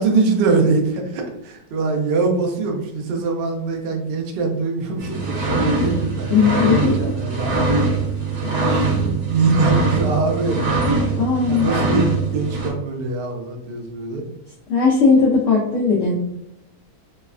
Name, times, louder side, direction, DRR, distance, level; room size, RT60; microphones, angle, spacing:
voice 1, 0.0-8.1 8.6-10.6 11.5-14.2, right 3 dB, 85° right, 2 dB, 0.5 m, -23 dB
sound 1, 5.0-12.7, right 3 dB, 50° right, 0.9 m, -22 dB
voice 2, 6.3-7.1 8.4-8.5 11.2-11.7 14.7-16.2, left 5 dB, 65° left, -3 dB, 0.8 m, -17 dB
3.1 x 2.0 x 2.3 m, 0.81 s
omnidirectional pair, 1.6 m